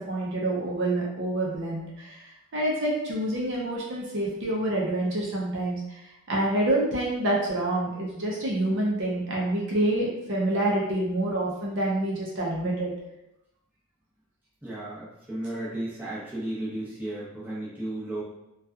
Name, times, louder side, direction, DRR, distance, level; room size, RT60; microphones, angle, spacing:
voice 1, 0.1-2.1 2.5-5.8 6.3-12.9, right 1 dB, 55° right, -3 dB, 0.6 m, -27 dB
voice 2, 14.6-18.2, right 1 dB, 10° right, -8 dB, 0.7 m, -34 dB
2.7 x 2.3 x 2.3 m, 0.86 s
head